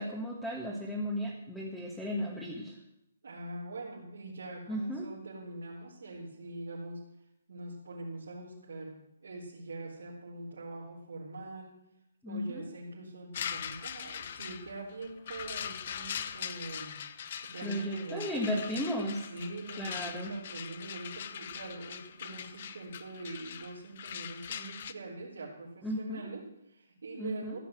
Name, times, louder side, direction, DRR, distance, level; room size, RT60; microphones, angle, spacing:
voice 1, 0.0-2.8 4.7-5.1 12.2-12.7 17.6-19.2 19.8-20.3 25.8-26.3 27.2-27.6, equal, 5° left, -3 dB, 1.7 m, -35 dB
voice 2, 3.2-7.0 7.5-8.9 9.2-11.7 12.3-18.5 19.3-27.6, right 2 dB, 80° right, -7 dB, 3.8 m, -43 dB
Iron Fence, 13.3-24.9, left 8 dB, 50° left, 0.8 m, -41 dB
14.5 x 7.2 x 7.5 m, 0.83 s
hypercardioid pair, 155°, 0 cm